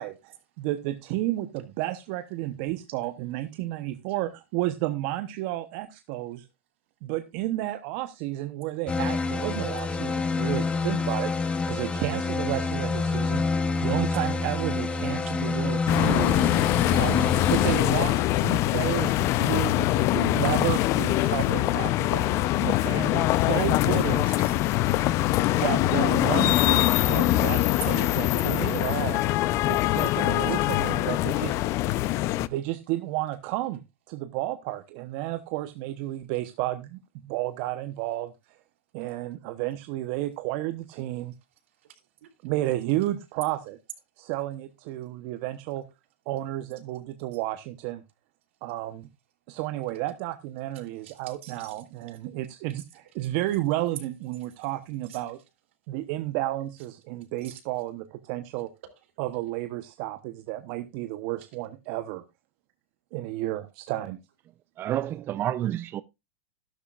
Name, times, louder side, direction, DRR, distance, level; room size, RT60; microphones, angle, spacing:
voice 1, 0.0-6.5 7.0-13.5 13.8-16.5 16.9-22.3 22.6-24.3 25.5-29.2 29.7-31.6 32.4-33.8 34.1-38.6 38.9-41.3 42.4-43.8 44.2-45.8 46.3-48.0 48.6-49.1 49.5-55.4 55.9-58.7 59.2-62.2 63.1-64.2, right 15 dB, 55° right, 1.0 m, -32 dB
sound 1, 8.9-17.8, left 3 dB, 15° left, 1.2 m, -27 dB
sound 2, 15.9-32.5, left 16 dB, 45° left, 0.6 m, -23 dB
voice 2, 18.9-19.2 20.0-20.1 23.2-23.4 24.3-24.6 24.8-25.3 41.8-42.3 51.0-51.8 55.1-55.2 57.4-57.6, right 10 dB, 80° right, 3.2 m, -49 dB
voice 3, 64.8-66.0, right 12 dB, 35° right, 0.5 m, -29 dB
12.0 x 12.0 x 2.5 m
hypercardioid pair, 110°, 7 cm